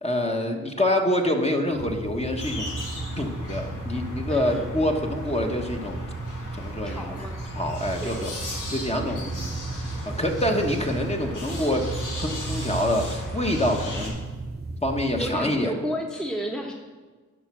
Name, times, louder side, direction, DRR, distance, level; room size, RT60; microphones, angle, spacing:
voice 1, 0.0-2.7 3.2-6.1 6.5-7.2 7.6-8.3 8.7-9.5 10.0-14.1 14.8-15.7, left 1 dB, 20° left, 2 dB, 1.2 m, -26 dB
sound 1, 1.7-15.4, right 2 dB, 35° right, 0.8 m, -36 dB
sound 2, 2.4-14.1, equal, 80° left, 2.0 m, -35 dB
voice 2, 4.3-4.8 6.8-7.4 8.0-8.3 15.1-16.7, equal, ahead, 1 dB, 1.0 m, -32 dB
10.0 x 5.2 x 6.1 m, 1.4 s
cardioid pair, 60°, 30 cm